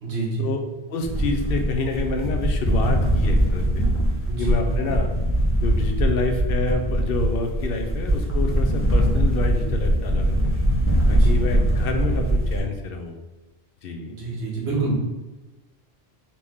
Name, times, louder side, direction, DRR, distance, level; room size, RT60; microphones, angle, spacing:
voice 1, 0.0-0.5 4.3-4.5 11.0-11.3 14.2-14.9, right 3 dB, 90° right, -3 dB, 1.4 m, -27 dB
voice 2, 0.9-3.9 4.4-5.1 5.6-10.3 11.1-13.2 13.8-14.2, left 3 dB, 65° left, 4 dB, 0.8 m, -28 dB
sound 1, 1.0-12.6, right 1 dB, 15° left, 0.6 m, -21 dB
4.2 x 3.1 x 3.4 m, 1.1 s
omnidirectional pair, 1.1 m